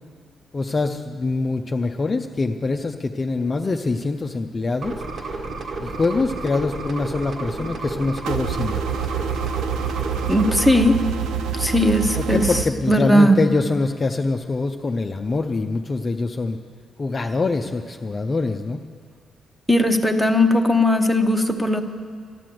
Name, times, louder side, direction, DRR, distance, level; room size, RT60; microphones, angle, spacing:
voice 1, 0.5-5.0 5.2-5.3 5.8-8.8 12.2-16.6 17.0-18.8, left 3 dB, 25° left, 4 dB, 0.5 m, -24 dB
sound 1, 4.8-10.8, right 3 dB, 50° right, 1.7 m, -31 dB
sound 2, 8.3-12.6, right 7 dB, 90° right, 0.6 m, -26 dB
voice 2, 10.3-11.0 11.5-12.5 12.9-13.4 19.7-21.8, left 1 dB, ahead, 6 dB, 0.9 m, -18 dB
13.0 x 11.5 x 7.7 m, 2.1 s
cardioid pair, 150°, 0 cm